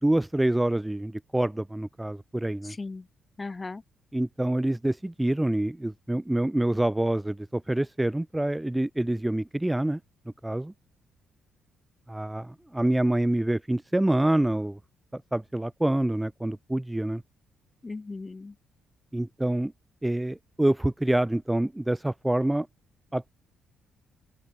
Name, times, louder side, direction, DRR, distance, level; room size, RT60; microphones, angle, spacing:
voice 1, 0.0-2.8 4.1-10.0 10.4-10.7 12.1-14.8 15.1-17.2 19.1-19.7 20.0-22.7 23.1-23.3, right 1 dB, 10° right, 0.8 m, -26 dB
voice 2, 2.6-3.1 3.4-3.8 17.8-18.5, left 3 dB, 25° left, 2.8 m, -37 dB
open air
cardioid pair, 90°, 0 cm